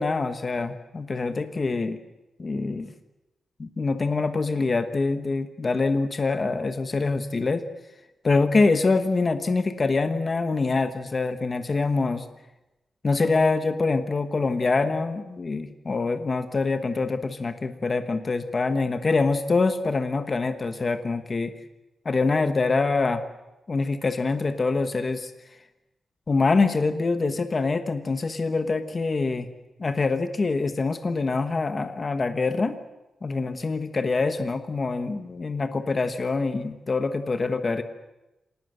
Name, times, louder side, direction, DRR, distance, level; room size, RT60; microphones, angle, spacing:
voice 1, 0.0-2.0 2.4-2.9 3.6-7.6 8.2-12.2 13.0-21.5 22.0-23.2 23.7-25.3 26.3-29.5 29.8-32.8 33.2-37.8, left 3 dB, 30° left, 9 dB, 1.1 m, -25 dB
26.0 x 19.0 x 7.9 m, 0.99 s
wide cardioid pair, 165°, 0 cm